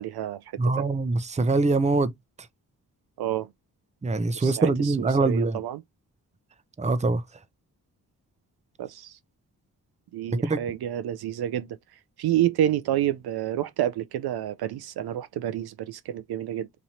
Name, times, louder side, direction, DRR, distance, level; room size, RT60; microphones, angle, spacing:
voice 1, 0.0-0.9 3.2-3.5 4.3-5.8 8.8-9.2 10.1-11.8 12.2-16.7, right 12 dB, 70° right, 0.5 m, -29 dB
voice 2, 0.6-2.1 4.0-5.6 6.8-7.2 10.4-10.6, right 3 dB, 20° right, 0.6 m, -23 dB
3.0 x 2.6 x 4.2 m
supercardioid pair, 50°, 39 cm